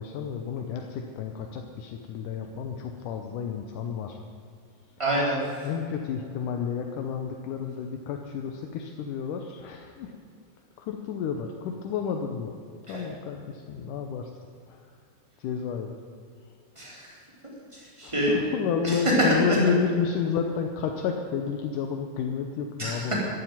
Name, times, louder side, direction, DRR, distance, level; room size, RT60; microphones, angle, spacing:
voice 1, 0.0-4.2 5.6-10.1 10.8-12.6 12.9-14.3 14.7-14.8 15.4-16.0 18.0-23.2, left 6 dB, 80° left, 4 dB, 2.4 m, -31 dB
voice 2, 5.0-5.4 12.9-13.0 16.8-17.1 17.7-18.3 18.8-19.0 19.3-19.6 22.8-23.1, right 1 dB, 10° right, -4 dB, 3.7 m, -27 dB
13.5 x 9.2 x 9.4 m, 2.3 s
omnidirectional pair, 3.7 m